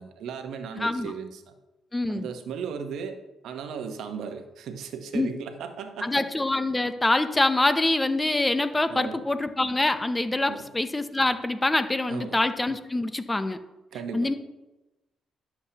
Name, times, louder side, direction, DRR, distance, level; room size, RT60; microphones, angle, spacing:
voice 1, 0.0-1.5 2.1-6.3 8.9-9.2 10.5-10.7 12.1-12.4 13.9-14.3, right 6 dB, 80° right, 8 dB, 0.9 m, -36 dB
voice 2, 0.8-1.1 1.9-2.3 5.1-5.3 6.0-13.6 14.1-14.3, left 2 dB, 15° left, 11 dB, 0.6 m, -25 dB
11.0 x 7.2 x 2.9 m, 1.0 s
cardioid pair, 90°, 0 cm